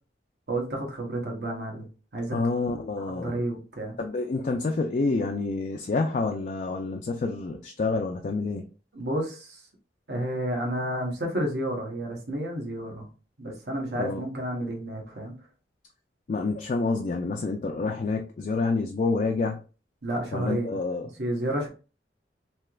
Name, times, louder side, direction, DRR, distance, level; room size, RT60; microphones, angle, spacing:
voice 1, 0.5-1.9 2.1-2.4 3.0-3.9 8.9-9.6 10.1-13.1 13.4-15.3 20.0-20.7 21.2-21.7, right 1 dB, 70° right, 1.0 m, -31 dB
voice 2, 2.3-3.3 4.0-8.7 14.0-14.2 16.3-19.6 20.3-21.1, left 3 dB, 45° left, 0.3 m, -28 dB
3.3 x 2.8 x 2.3 m
head